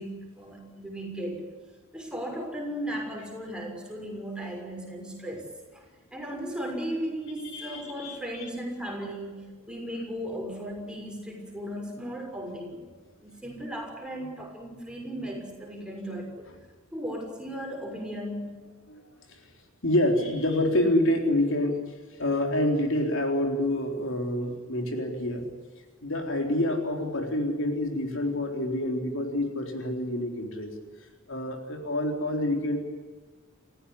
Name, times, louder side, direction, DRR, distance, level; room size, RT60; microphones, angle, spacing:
voice 1, 0.0-1.4 1.9-5.5 5.7-5.8 6.1-12.8 13.2-16.5 16.9-18.6, equal, 5° right, 0 dB, 6.3 m, -36 dB
voice 2, 7.5-8.2 18.9-19.0 19.3-19.4 19.8-21.8 22.2-25.5 26.0-30.7 31.3-32.8, left 1 dB, 65° left, 3 dB, 3.9 m, -27 dB
29.5 x 15.5 x 9.9 m, 1.4 s
head